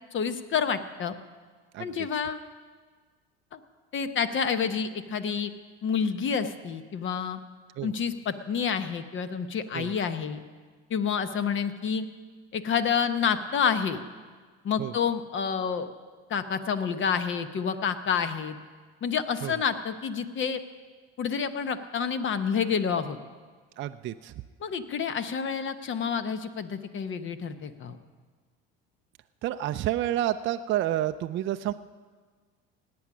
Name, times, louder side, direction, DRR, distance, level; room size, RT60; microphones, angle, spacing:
voice 1, 0.1-1.1 1.8-2.4 3.5-3.6 3.9-5.5 5.8-7.4 7.8-10.4 10.9-12.1 12.5-14.0 14.6-15.9 16.3-18.6 19.0-20.6 21.2-23.2 24.6-28.0, left 6 dB, 40° left, 11 dB, 1.0 m, -28 dB
voice 2, 1.7-2.1 7.8-7.9 9.7-9.9 14.8-14.9 19.4-19.5 23.8-24.3 29.4-31.7, right 12 dB, 40° right, 9 dB, 0.5 m, -29 dB
18.0 x 8.6 x 6.1 m, 1.5 s
supercardioid pair, 90°, 31 cm